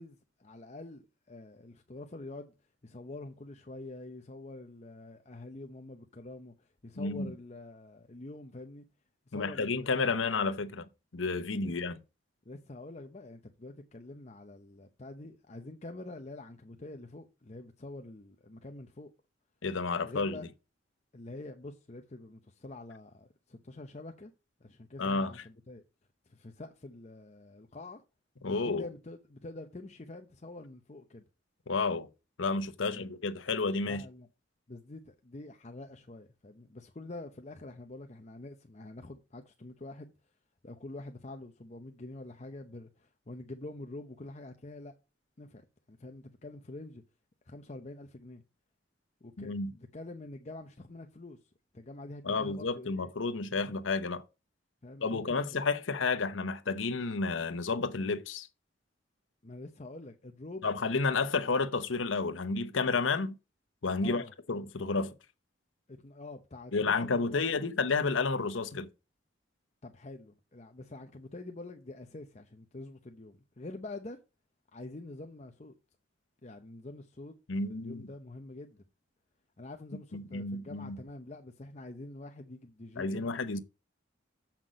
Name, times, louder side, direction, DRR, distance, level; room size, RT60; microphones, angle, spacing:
voice 1, 0.0-2.5 2.8-8.9 9.3-9.9 11.6-11.9 12.5-19.1 20.0-20.5 21.1-24.3 24.6-25.8 26.3-28.0 28.4-31.2 32.8-33.1 33.8-34.3 34.7-40.1 40.6-44.9 45.4-47.0 47.5-48.4 49.2-51.4 51.7-53.1 54.8-55.4 59.4-60.7 64.0-64.3 65.9-67.7 69.8-74.2 74.7-75.7 76.4-77.3 77.7-78.8 79.6-83.3, left 2 dB, 35° left, 0.7 m, -46 dB
voice 2, 7.0-7.3 9.3-12.0 19.6-20.4 25.0-25.4 28.4-28.9 31.7-32.1 32.4-34.0 49.4-49.7 52.2-54.2 55.0-58.5 60.6-63.3 63.8-65.1 66.7-68.9 77.5-78.1 80.1-81.0 83.0-83.6, left 4 dB, 85° left, 0.9 m, -31 dB
7.6 x 5.9 x 5.1 m
head